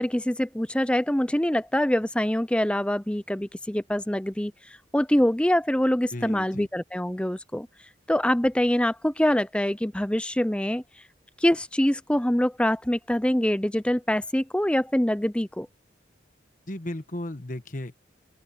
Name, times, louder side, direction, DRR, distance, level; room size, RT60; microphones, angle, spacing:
voice 1, 0.0-4.5 4.9-7.7 8.1-10.8 11.4-15.7, left 1 dB, 5° left, 0.5 m, -24 dB
voice 2, 6.1-6.7 16.7-18.0, left 1 dB, 45° left, 1.3 m, -35 dB
open air
head